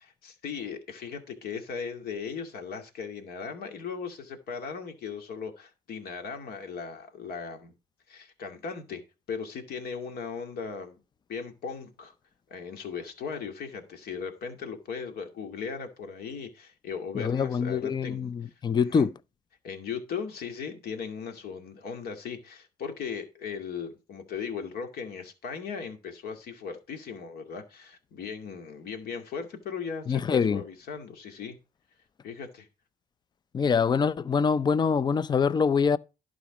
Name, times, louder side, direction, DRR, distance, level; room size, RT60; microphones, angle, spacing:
voice 1, 0.0-7.7 8.1-9.0 9.3-11.0 11.3-12.1 12.5-18.3 18.7-19.1 19.6-31.6 32.2-32.7, left 6 dB, 65° left, 2.4 m, -38 dB
voice 2, 17.2-19.1 30.1-30.6 33.5-36.0, left 6 dB, 25° left, 0.5 m, -25 dB
11.5 x 5.2 x 5.0 m
cardioid pair, 110°, 17 cm